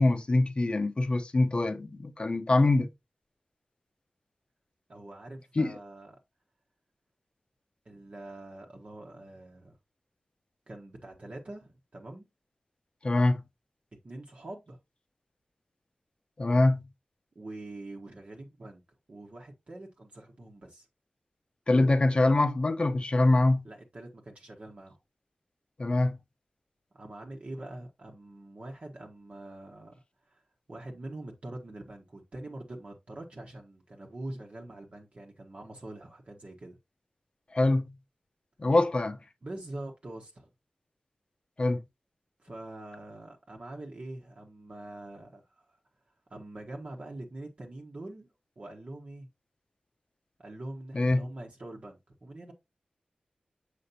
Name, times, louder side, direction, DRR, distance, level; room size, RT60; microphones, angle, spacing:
voice 1, 0.0-2.9 5.6-5.7 13.0-13.4 16.4-16.8 21.7-23.7 25.8-26.2 37.5-37.9 38.6-39.2 41.6-41.8 50.9-51.3, left 2 dB, 40° left, 0.7 m, -24 dB
voice 2, 4.9-6.2 7.8-9.8 10.7-12.3 14.0-14.8 17.3-18.8 19.1-20.9 23.6-25.0 26.9-30.4 30.7-36.8 39.4-40.5 42.4-45.8 46.3-48.3 48.6-49.3 50.4-52.5, right 2 dB, 50° right, 1.2 m, -44 dB
6.8 x 5.1 x 2.7 m
wide cardioid pair, 85°, 3 cm